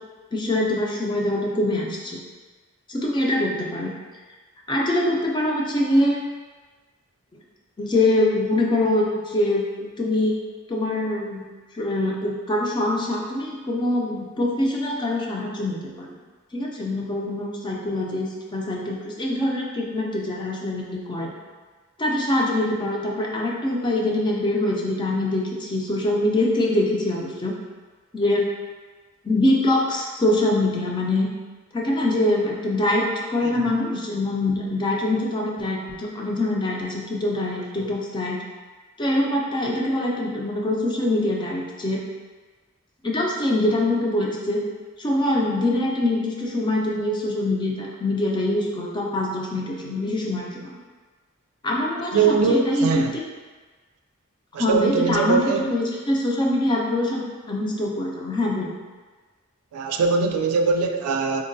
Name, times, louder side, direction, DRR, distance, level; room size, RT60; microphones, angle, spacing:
voice 1, 0.3-2.2 2.9-3.9 4.7-6.2 7.8-10.4 10.7-11.5 11.7-16.2 16.5-21.3 22.0-27.6 28.1-28.5 29.2-31.3 31.7-38.4 39.0-42.0 43.0-44.6 45.0-50.8 51.6-53.2 54.6-58.7, left 1 dB, 20° left, -2 dB, 0.4 m, -24 dB
voice 2, 52.1-53.1 54.5-55.7 59.7-61.4, right 5 dB, 85° right, 5 dB, 0.3 m, -22 dB
3.8 x 2.1 x 2.6 m, 1.3 s
head